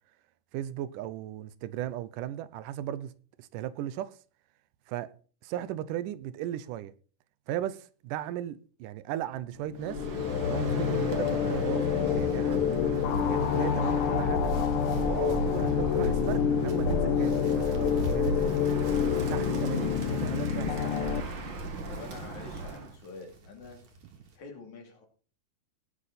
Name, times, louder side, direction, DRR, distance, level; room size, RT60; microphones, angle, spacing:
voice 1, 0.5-4.2 4.9-5.1 5.4-6.9 7.5-10.0 10.5-12.7 13.3-14.5 15.0-18.6 19.3-21.0, right 12 dB, 80° right, 2.2 m, -36 dB
sound 1, 9.6-21.2, left 8 dB, 85° left, 1.2 m, -28 dB
Bird, 9.8-22.9, right 2 dB, 40° right, 2.0 m, -35 dB
sound 2, 12.6-24.4, right 2 dB, 55° right, 4.0 m, -54 dB
voice 2, 21.9-23.8 24.4-25.0, left 4 dB, 60° left, 4.1 m, -46 dB
18.5 x 8.0 x 4.1 m
omnidirectional pair, 3.9 m